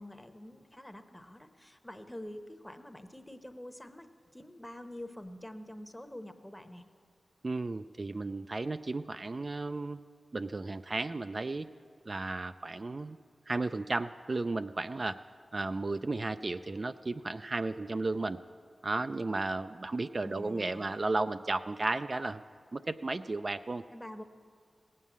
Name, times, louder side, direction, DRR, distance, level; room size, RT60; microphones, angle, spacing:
voice 1, 0.0-4.1 4.3-6.9 20.2-20.9 23.9-24.2, left 1 dB, 15° left, 8 dB, 0.9 m, -46 dB
voice 2, 7.4-10.0 10.3-11.7 12.1-13.2 13.5-15.2 15.5-18.4 18.8-22.4 22.7-23.8, right 3 dB, 45° right, 9 dB, 0.3 m, -34 dB
17.0 x 7.4 x 8.3 m, 2.1 s
cardioid pair, 55°, 0 cm